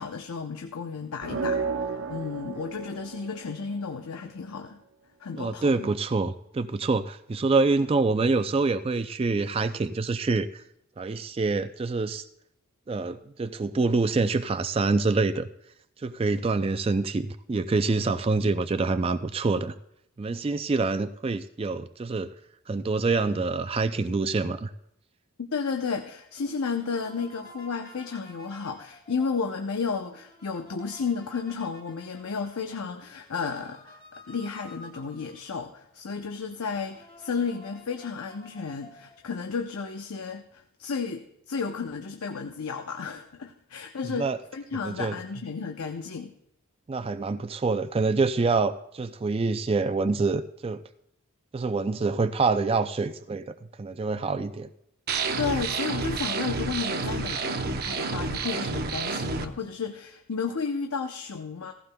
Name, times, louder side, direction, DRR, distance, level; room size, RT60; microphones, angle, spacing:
voice 1, 0.0-4.8 5.2-5.9 25.4-46.3 55.4-61.7, left 5 dB, 90° left, 5 dB, 0.7 m, -33 dB
sound 1, 1.2-3.9, right 4 dB, 70° right, 0.9 m, -32 dB
voice 2, 5.4-10.6 11.0-12.2 12.9-15.5 16.0-19.7 20.2-22.3 22.7-24.7 44.1-44.4 44.8-45.2 46.9-50.8 51.5-54.7, right 3 dB, 25° right, 10 dB, 0.3 m, -26 dB
sound 2, 26.4-35.7 36.2-36.3 36.5-39.3, left 1 dB, 20° left, 2.4 m, -52 dB
sound 3, 55.1-59.5, right 4 dB, 45° right, 0.7 m, -29 dB
17.0 x 15.0 x 2.2 m, 0.76 s
head